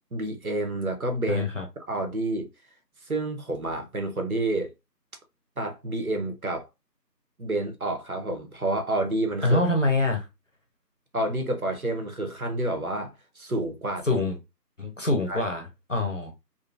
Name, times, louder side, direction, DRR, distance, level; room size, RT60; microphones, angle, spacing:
voice 1, 0.1-1.5 1.9-2.5 3.1-4.7 5.6-6.6 7.4-9.6 11.1-14.2 15.3-15.5, right 2 dB, 60° right, 0.8 m, -29 dB
voice 2, 1.3-1.6 9.4-10.3 14.0-14.4 14.8-16.3, left 2 dB, 50° left, 0.7 m, -25 dB
2.6 x 2.6 x 2.3 m
figure-of-eight pair, 180°, 50 cm